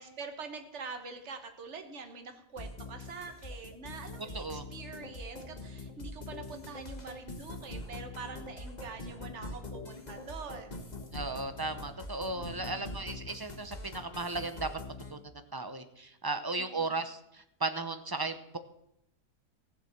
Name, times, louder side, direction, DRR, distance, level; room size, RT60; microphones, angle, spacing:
voice 1, 0.0-10.9 12.4-13.1 16.5-17.0, right 4 dB, 45° right, 6 dB, 1.8 m, -45 dB
sound 1, 2.6-15.1, left 2 dB, 25° left, 1.4 m, -43 dB
voice 2, 4.3-4.6 11.1-14.7 15.1-15.2 15.5-17.2 17.6-18.6, right 3 dB, 25° right, 9 dB, 0.5 m, -35 dB
15.5 x 7.5 x 7.3 m, 0.80 s
omnidirectional pair, 1.7 m